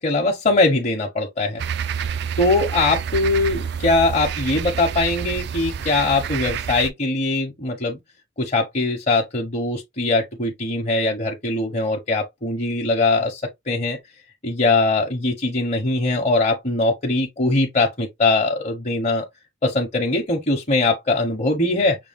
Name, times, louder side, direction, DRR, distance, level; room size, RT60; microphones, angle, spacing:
voice 1, 0.0-1.6 2.4-8.0 8.4-14.0 14.4-19.3 19.6-22.0, left 2 dB, 35° left, 0.9 m, -21 dB
sound 1, 1.6-6.9, right 7 dB, 55° right, 0.3 m, -28 dB
6.1 x 2.3 x 3.6 m
head